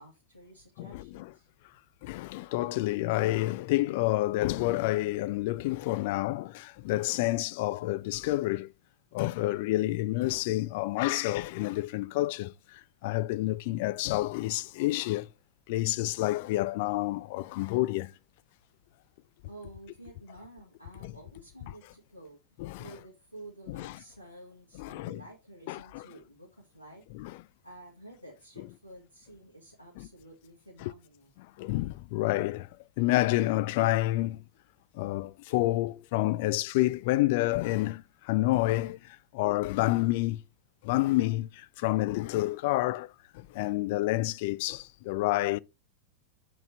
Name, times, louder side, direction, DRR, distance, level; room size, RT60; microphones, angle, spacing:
voice 1, 0.0-1.5 19.5-22.4 22.8-27.0 27.6-31.3, right 1 dB, 90° left, 2.0 m, -51 dB
voice 2, 2.0-8.7 9.1-12.5 13.0-15.3 15.7-18.1 21.0-21.1 22.6-22.9 23.7-23.9 24.8-25.2 25.7-26.1 27.1-27.3 30.0-30.1 31.6-32.7 33.0-34.4 35.0-39.0 39.3-40.4 40.8-43.1 43.3-45.6, left 17 dB, 50° left, 0.3 m, -29 dB
6.5 x 4.1 x 4.7 m
figure-of-eight pair, 90°, 0 cm